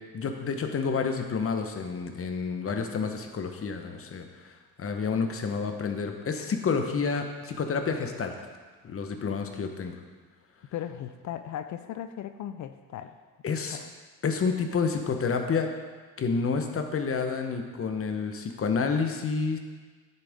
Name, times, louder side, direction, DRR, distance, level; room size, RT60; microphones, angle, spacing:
voice 1, 0.1-8.4 8.8-9.9 13.4-13.8 14.2-15.7 16.2-19.6, left 5 dB, 40° left, 5 dB, 1.1 m, -29 dB
voice 2, 10.7-13.1 13.6-13.9, left 10 dB, 55° left, 10 dB, 0.5 m, -37 dB
10.0 x 6.9 x 3.6 m, 1.4 s
supercardioid pair, 80°, 34 cm